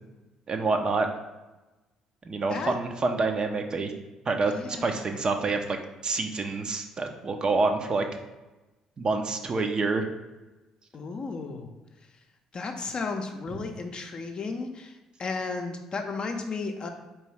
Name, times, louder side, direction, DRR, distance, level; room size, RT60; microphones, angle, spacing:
voice 1, 0.5-1.1 2.3-3.9 4.3-4.5 4.8-5.8 6.0-8.0 9.0-10.0, right 3 dB, 35° right, 5 dB, 0.5 m, -27 dB
voice 2, 4.5-5.0 10.9-11.7 12.5-16.9, left 4 dB, 40° left, 4 dB, 0.6 m, -34 dB
4.5 x 3.0 x 3.3 m, 1.1 s
figure-of-eight pair, 50°, 2 cm